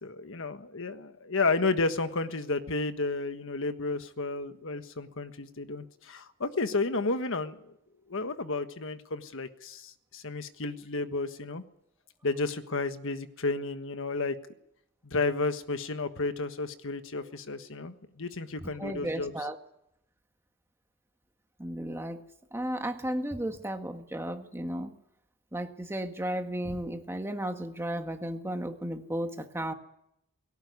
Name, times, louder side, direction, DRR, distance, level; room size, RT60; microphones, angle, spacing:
voice 1, 0.0-7.7 8.1-11.6 12.2-14.3 15.0-19.5, left 3 dB, 65° left, 9 dB, 1.4 m, -32 dB
voice 2, 18.8-19.6 21.6-22.2 22.5-24.9 25.5-29.7, right 1 dB, 10° right, 5 dB, 1.6 m, -34 dB
18.5 x 17.0 x 9.6 m, 0.79 s
head